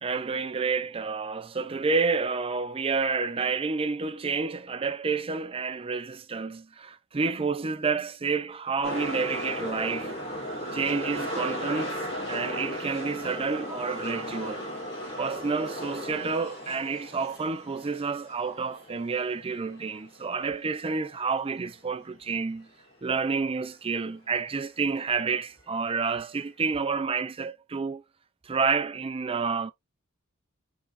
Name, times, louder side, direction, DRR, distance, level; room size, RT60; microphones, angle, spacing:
voice 1, 0.0-10.1 10.7-12.0 12.3-14.7 15.2-22.7 23.0-28.0 28.5-29.7, right 4 dB, 25° right, 0.5 m, -29 dB
sound 1, 8.8-20.9 21.2-21.3, equal, 25° left, 2.2 m, -36 dB
5.1 x 3.7 x 2.5 m
head